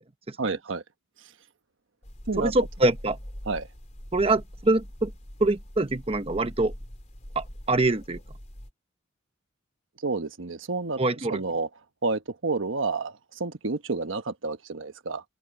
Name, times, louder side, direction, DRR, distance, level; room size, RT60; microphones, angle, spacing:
voice 1, 0.4-0.8 2.3-2.5 3.5-3.7 10.0-11.0 11.3-11.7 12.0-15.2, right 3 dB, 80° right, 1.2 m, -29 dB
sound 1, 2.0-8.7, equal, 35° left, 3.4 m, -43 dB
voice 2, 2.4-3.2 4.1-5.1 5.4-6.7 7.3-8.2 11.0-11.4, right 2 dB, 30° right, 0.9 m, -24 dB
head